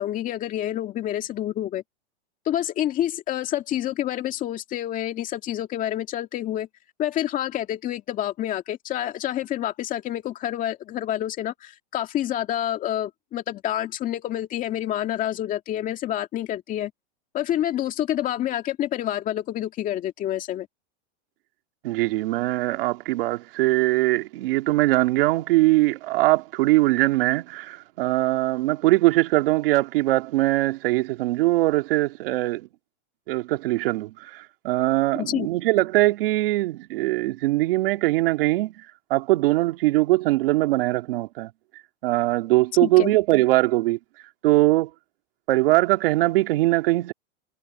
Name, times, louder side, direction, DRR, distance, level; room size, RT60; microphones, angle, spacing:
voice 1, 0.0-1.8 2.5-6.7 7.0-16.9 17.3-20.7 35.2-35.5 42.8-43.1, left 12 dB, 25° left, 2.0 m, -28 dB
voice 2, 21.8-32.7 33.3-38.7 39.1-41.5 42.0-44.0 44.4-44.9 45.5-47.1, right 19 dB, 55° right, 2.3 m, -21 dB
supercardioid pair, 155°, 34 cm